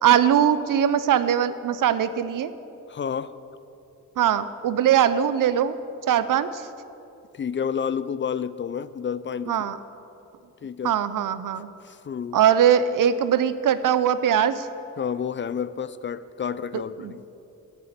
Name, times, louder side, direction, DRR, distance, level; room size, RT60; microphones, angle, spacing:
voice 1, 0.0-2.5 4.2-5.8 6.1-6.7 9.5-9.8 10.8-11.7 12.3-14.7 16.7-17.1, right 9 dB, 75° right, 13 dB, 0.7 m, -21 dB
voice 2, 2.9-3.3 7.3-9.7 10.6-11.0 11.8-12.4 15.0-17.2, left 7 dB, 35° left, 15 dB, 0.4 m, -30 dB
12.0 x 6.9 x 8.7 m, 2.8 s
cardioid pair, 105°, 32 cm